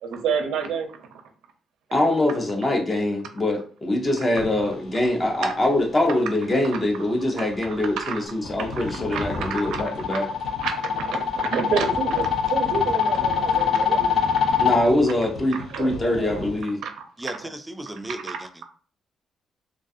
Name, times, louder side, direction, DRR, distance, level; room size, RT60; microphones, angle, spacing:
voice 1, 0.0-1.1 5.4-5.5 7.4-7.5 8.0-8.2 8.6-8.8 9.1-9.8 10.1-10.2 10.6-14.7 15.7-16.3 16.8-17.4 18.3-18.6, right 6 dB, 80° right, 6 dB, 0.5 m, -29 dB
voice 2, 1.9-10.3 14.6-16.8, left 1 dB, 25° left, 0 dB, 0.6 m, -23 dB
sound 1, 4.3-16.6, left 2 dB, 80° left, 0.8 m, -39 dB
sound 2, 8.6-14.8, left 7 dB, 65° left, 0.4 m, -24 dB
voice 3, 17.2-18.5, right 1 dB, 10° right, 7 dB, 0.3 m, -35 dB
2.3 x 2.3 x 2.6 m, 0.41 s
cardioid pair, 90°, 0 cm